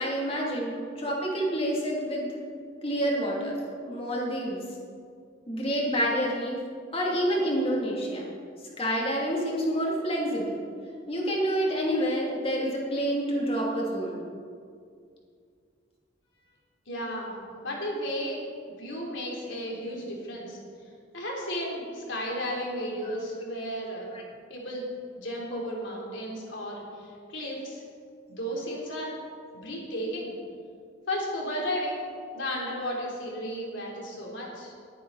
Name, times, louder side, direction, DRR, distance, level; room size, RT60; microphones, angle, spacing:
voice 1, 0.0-2.4 2.8-3.5 3.8-4.6 5.5-6.6 6.9-8.2 8.8-10.6 11.1-14.2 24.1-24.2, equal, 30° left, -3 dB, 2.9 m, -28 dB
voice 2, 16.9-17.3 17.6-18.4 18.8-20.6 21.1-24.1 24.5-24.8 25.1-27.8 28.4-29.1 29.6-30.3 31.1-32.0 32.3-34.7, equal, 80° left, -2 dB, 3.6 m, -33 dB
19.0 x 10.0 x 4.2 m, 2.3 s
head